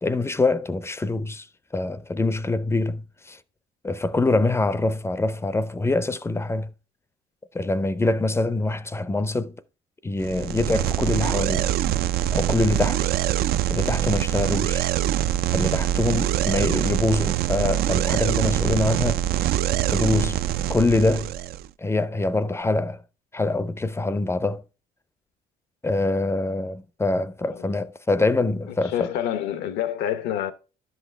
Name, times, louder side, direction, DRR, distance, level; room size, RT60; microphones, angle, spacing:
voice 1, 0.0-1.5 1.7-3.4 3.8-6.7 7.5-9.6 10.0-11.7 12.3-13.1 13.7-14.9 15.5-19.2 19.9-20.4 20.7-21.3 21.8-23.0 23.3-24.6 25.8-29.1, left 2 dB, 15° left, 0.5 m, -24 dB
sound 1, 10.2-21.7, right 11 dB, 65° right, 0.4 m, -24 dB
voice 2, 28.8-30.5, left 11 dB, 85° left, 0.9 m, -27 dB
11.0 x 6.2 x 3.3 m
cardioid pair, 110°, 17 cm